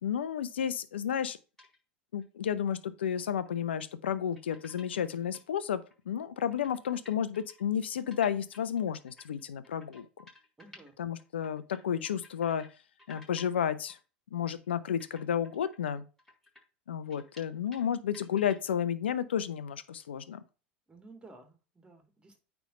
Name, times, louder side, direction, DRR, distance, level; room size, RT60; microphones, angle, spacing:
voice 1, 0.0-1.4 2.1-5.8 6.1-10.1 11.0-12.7 13.1-14.0 14.3-16.0 16.9-20.4, left 8 dB, 80° left, 0.8 m, -32 dB
sound 1, 1.6-1.8 2.2-2.3 3.4-3.6 4.3-5.4 5.9-6.0 6.2-6.3 6.5-10.9 11.2-12.7 13.0-13.6 13.9-14.0 14.5-14.7 15.0-17.9 18.1-18.7, left 2 dB, 5° left, 4.6 m, -55 dB
voice 2, 10.6-10.9 20.9-22.4, right 3 dB, 15° right, 2.5 m, -54 dB
9.1 x 3.6 x 5.1 m
hypercardioid pair, 80°, 6 cm